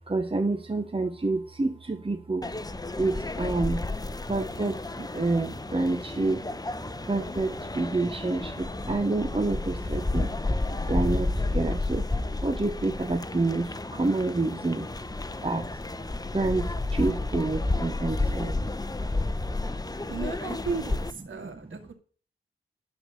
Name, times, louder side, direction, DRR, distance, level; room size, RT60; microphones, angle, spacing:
voice 1, 0.1-2.5 3.0-3.9 4.3-6.7 7.1-10.4 10.8-14.9 15.4-15.8 16.2-18.6 21.4-21.8, right 2 dB, 25° right, 7 dB, 1.2 m, -28 dB
sound 1, 2.4-21.1, left 2 dB, 20° left, 1.0 m, -31 dB
voice 2, 20.1-21.9, right 6 dB, 70° right, 7 dB, 2.4 m, -35 dB
12.0 x 4.9 x 6.7 m, 0.42 s
cardioid pair, 50°, 21 cm